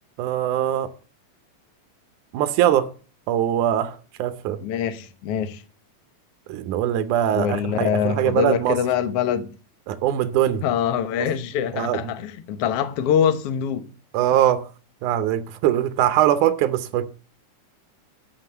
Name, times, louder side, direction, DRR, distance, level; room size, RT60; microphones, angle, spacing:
voice 1, 0.2-0.9 2.3-2.9 3.3-4.6 6.5-8.8 9.9-10.6 11.7-12.1 14.1-14.6 15.0-17.1, right 11 dB, 75° right, 2.2 m, -22 dB
voice 2, 4.6-5.6 7.3-9.5 10.6-13.9, left 8 dB, 60° left, 1.7 m, -24 dB
12.0 x 6.1 x 6.7 m
omnidirectional pair, 3.7 m